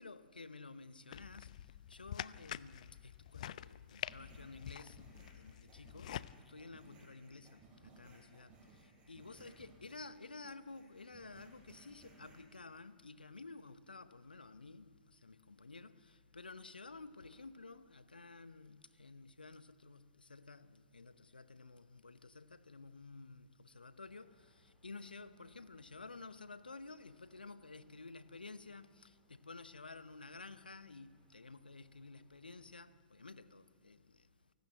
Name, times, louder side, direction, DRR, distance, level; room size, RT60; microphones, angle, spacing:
voice 1, 0.0-1.5 1.9-6.2 6.5-8.5 9.1-14.9 15.2-34.0, left 3 dB, 80° left, 0.8 m, -52 dB
sound 1, 1.1-6.3, left 11 dB, 55° left, 0.4 m, -47 dB
sound 2, 3.9-10.1 10.4-12.6, right 3 dB, 25° right, 6.4 m, -62 dB
sound 3, 24.0-32.8, left 2 dB, 10° left, 2.7 m, -76 dB
29.5 x 12.5 x 7.7 m
figure-of-eight pair, 110°, 5 cm